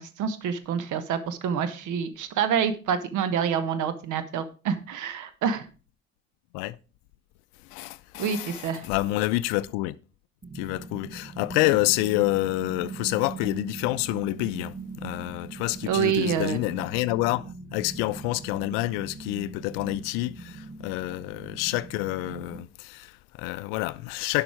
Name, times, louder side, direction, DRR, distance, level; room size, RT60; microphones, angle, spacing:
voice 1, 0.0-5.6 8.2-8.8 15.8-16.6, right 7 dB, 55° right, 1.3 m, -27 dB
voice 2, 7.6-10.0 10.5-24.4, left 18 dB, 60° left, 0.6 m, -28 dB
sound 1, 10.4-22.6, right 4 dB, 25° right, 1.0 m, -41 dB
11.0 x 5.5 x 4.8 m
figure-of-eight pair, 50°, 37 cm